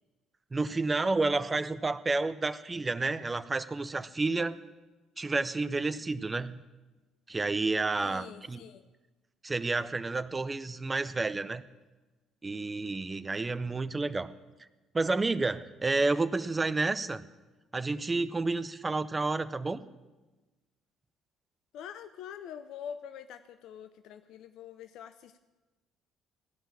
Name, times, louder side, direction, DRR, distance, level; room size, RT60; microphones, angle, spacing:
voice 1, 0.5-4.6 5.2-6.6 7.3-8.6 9.4-11.6 12.4-14.3 14.9-17.2 17.7-19.8, right 3 dB, 25° right, 13 dB, 0.6 m, -30 dB
voice 2, 8.0-8.9 21.7-25.4, left 8 dB, 60° left, 10 dB, 0.5 m, -45 dB
16.0 x 5.6 x 8.4 m, 1.2 s
figure-of-eight pair, 50°, 0 cm